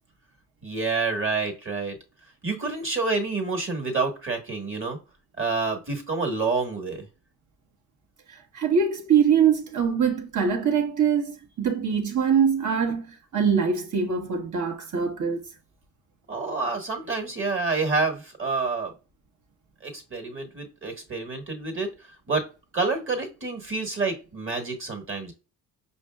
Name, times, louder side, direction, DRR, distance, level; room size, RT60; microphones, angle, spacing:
voice 1, 0.6-2.0 2.4-5.0 5.4-7.1 16.3-18.9 19.8-21.9 22.3-22.5 22.7-25.3, right 3 dB, 30° right, 1.5 m, -28 dB
voice 2, 8.5-15.4, right 7 dB, 45° right, 1.1 m, -23 dB
5.3 x 2.5 x 2.3 m
supercardioid pair, 70°, 40 cm